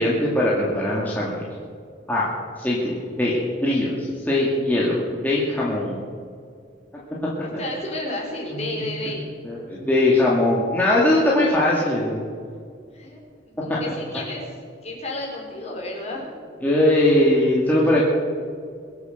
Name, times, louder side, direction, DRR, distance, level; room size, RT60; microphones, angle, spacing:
voice 1, 0.0-1.4 2.1-2.3 2.6-6.0 8.5-8.8 9.4-12.2 13.7-13.8 16.6-18.0, left 1 dB, 10° left, -6 dB, 2.5 m, -21 dB
voice 2, 7.4-9.3 12.9-13.2 13.6-14.4 14.8-16.3, left 1 dB, 35° left, -2 dB, 4.7 m, -31 dB
23.5 x 8.3 x 6.8 m, 2.2 s
head